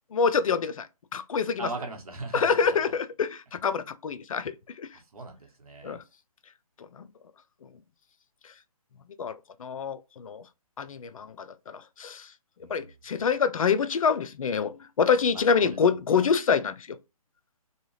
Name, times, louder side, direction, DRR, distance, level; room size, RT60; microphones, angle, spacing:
voice 1, 0.1-0.9 1.1-1.7 2.3-4.9 5.8-6.0 6.8-7.0 9.2-10.4 10.8-11.5 11.7-12.3 12.7-17.0, left 6 dB, 60° left, 0.4 m, -26 dB
voice 2, 1.6-2.8 5.1-6.0 12.6-12.9 15.5-15.8 16.1-16.3, right 3 dB, 70° right, 1.0 m, -39 dB
2.7 x 2.3 x 3.1 m
hypercardioid pair, 155°, 20 cm